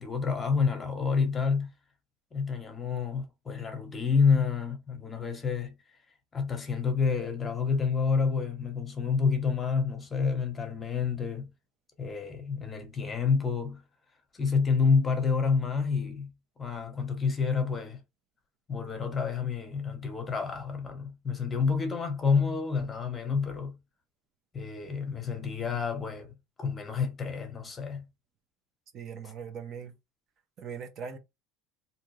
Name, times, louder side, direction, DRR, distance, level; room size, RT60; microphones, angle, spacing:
voice 1, 0.0-1.7 2.3-5.7 6.3-11.5 12.0-13.8 14.3-16.3 16.6-18.0 18.7-23.8 24.5-26.3 26.6-28.0, left 5 dB, 20° left, 1.0 m, -28 dB
voice 2, 28.9-29.9 30.6-31.2, right 6 dB, 45° right, 0.7 m, -40 dB
3.6 x 2.8 x 3.1 m
cardioid pair, 130°, 0 cm